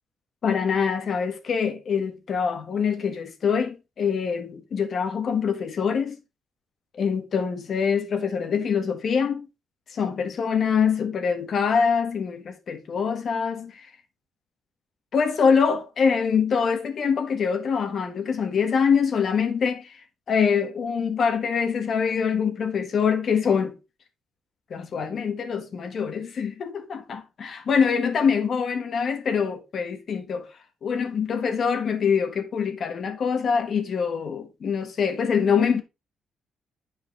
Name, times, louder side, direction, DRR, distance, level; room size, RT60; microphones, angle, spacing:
voice 1, 0.4-6.2 6.9-9.5 9.9-13.9 15.1-19.9 20.3-23.7 24.7-30.5 30.8-35.8, left 6 dB, 55° left, 1.5 m, -24 dB
9.3 x 4.8 x 3.3 m
cardioid pair, 90°, 0 cm